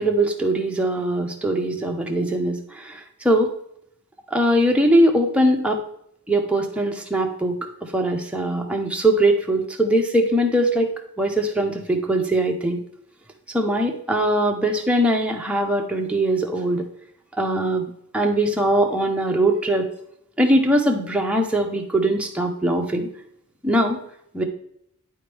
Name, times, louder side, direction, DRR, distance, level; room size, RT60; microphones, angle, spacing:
voice 1, 0.0-3.0 3.2-3.5 4.3-5.8 6.3-7.6 7.9-12.8 13.5-16.8 17.4-17.8 18.1-19.8 20.4-23.1 23.6-24.0 24.3-24.4, right 1 dB, 5° right, 1 dB, 0.8 m, -21 dB
10.5 x 4.4 x 3.4 m, 0.72 s
head